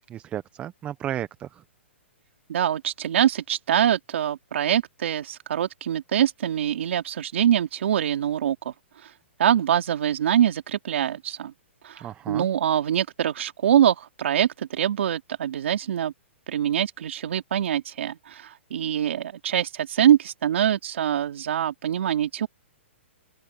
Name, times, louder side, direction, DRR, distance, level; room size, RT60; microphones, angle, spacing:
voice 1, 0.0-1.6 12.0-12.5, right 11 dB, 20° right, 0.8 m, -34 dB
voice 2, 2.5-8.7 9.0-9.1 9.4-11.5 11.8-16.1 16.5-22.5, right 10 dB, 70° right, 3.1 m, -24 dB
open air
hypercardioid pair, 155°, 7 cm